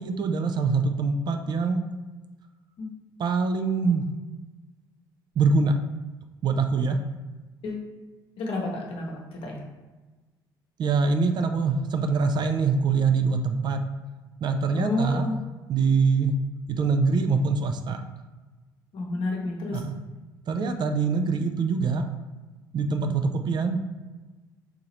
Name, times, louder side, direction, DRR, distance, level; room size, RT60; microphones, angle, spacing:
voice 1, 0.0-1.8 3.2-4.1 5.4-5.7 6.4-7.0 10.8-13.8 14.4-15.3 15.7-16.4 16.7-18.0 19.7-19.9 20.5-22.0 22.7-23.8, right 4 dB, 40° right, 7 dB, 0.4 m, -24 dB
voice 2, 8.4-9.6 14.7-15.4 18.9-19.8 20.6-20.7 22.9-23.1, left 2 dB, 55° left, 0 dB, 0.9 m, -30 dB
3.9 x 2.8 x 3.0 m, 1.2 s
figure-of-eight pair, 50°, 11 cm